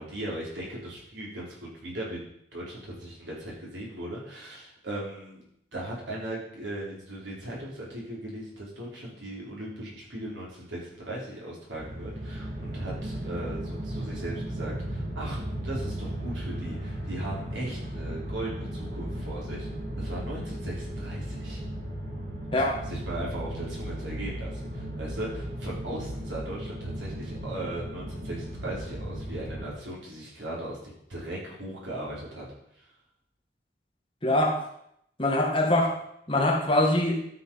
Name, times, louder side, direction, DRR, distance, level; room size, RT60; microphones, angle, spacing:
voice 1, 0.0-2.2 2.5-5.4 5.7-19.7 20.0-21.6 22.5-32.5 32.8-32.9, right 1 dB, 85° right, -4 dB, 4.4 m, -38 dB
sound 1, 11.8-29.7, right 1 dB, 40° right, 2.4 m, -36 dB
voice 2, 34.2-34.6 35.2-36.0 36.3-37.2, left 1 dB, 30° left, 0 dB, 1.7 m, -23 dB
12.5 x 6.2 x 5.6 m, 0.74 s
head